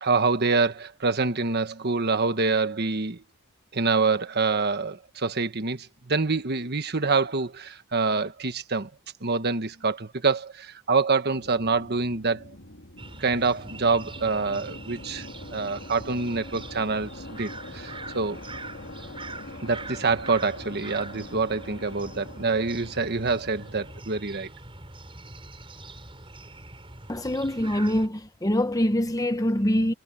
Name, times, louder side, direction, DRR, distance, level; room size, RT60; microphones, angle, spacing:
voice 1, 0.0-3.2 3.7-8.9 9.2-12.4 13.2-15.3 15.5-18.4 19.6-24.5, right 4 dB, 50° right, 1.4 m, -26 dB
sound 1, 11.3-24.0, left 2 dB, 55° left, 3.6 m, -44 dB
sound 2, 13.0-28.1, right 2 dB, 25° right, 7.3 m, -43 dB
voice 2, 27.1-29.9, equal, 15° left, 1.1 m, -24 dB
head